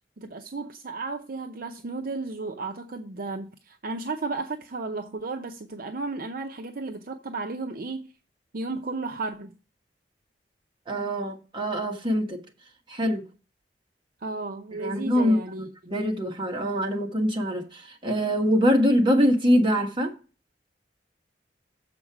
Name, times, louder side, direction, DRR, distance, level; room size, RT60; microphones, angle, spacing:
voice 1, 0.2-8.1 8.5-9.5 14.2-15.7, right 3 dB, 55° right, 0.6 m, -34 dB
voice 2, 10.9-12.4 12.9-13.3 14.8-20.1, equal, 30° right, 1.5 m, -24 dB
7.2 x 5.3 x 5.8 m
head